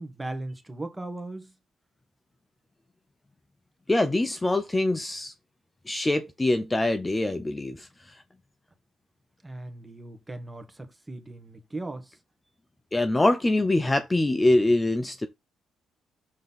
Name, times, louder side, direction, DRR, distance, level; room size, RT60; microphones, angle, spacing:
voice 1, 0.0-1.5 9.4-12.2, right 2 dB, 15° right, 1.8 m, -38 dB
voice 2, 3.9-5.3 5.9-7.9 12.9-15.3, left 2 dB, 15° left, 0.8 m, -24 dB
7.4 x 3.8 x 4.1 m
cardioid pair, 90°, 0 cm